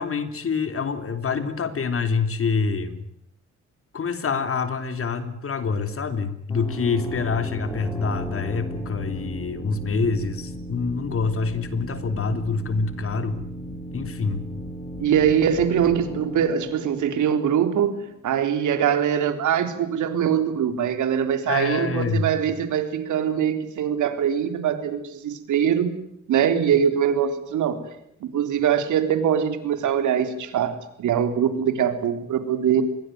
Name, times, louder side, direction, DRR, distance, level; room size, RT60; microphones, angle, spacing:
voice 1, 0.0-3.0 3.9-13.4 13.9-14.5 21.5-22.3, left 4 dB, 45° left, 10 dB, 3.6 m, -26 dB
sound 1, 6.5-18.0, right 1 dB, 10° left, 6.1 m, -36 dB
voice 2, 15.0-18.0 18.2-26.0 26.3-27.8 28.2-32.8, right 8 dB, 75° right, 9 dB, 3.7 m, -22 dB
26.0 x 22.0 x 9.4 m, 0.75 s
cardioid pair, 90°, 30 cm